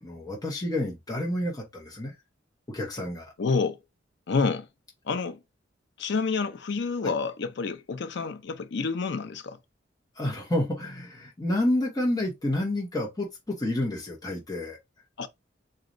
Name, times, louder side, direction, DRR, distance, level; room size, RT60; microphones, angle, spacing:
voice 1, 0.0-2.1 2.7-3.3 7.0-7.1 10.2-14.8, left 1 dB, 20° left, 0.9 m, -29 dB
voice 2, 3.4-3.8 4.3-4.6 5.1-5.4 6.0-9.6 15.2-15.3, left 4 dB, 65° left, 0.6 m, -28 dB
4.0 x 3.0 x 2.6 m
head